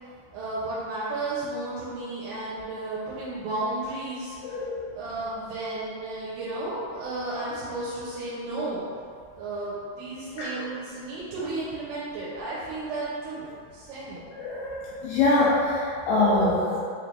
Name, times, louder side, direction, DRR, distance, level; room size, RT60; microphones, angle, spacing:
voice 1, 0.3-4.6 4.9-8.8 9.3-14.2, right 2 dB, 80° right, -8 dB, 2.7 m, -33 dB
voice 2, 4.4-4.9 10.4-10.7 14.4-16.8, left 2 dB, 85° left, -8 dB, 2.5 m, -24 dB
6.3 x 3.2 x 2.5 m, 2.2 s
omnidirectional pair, 4.8 m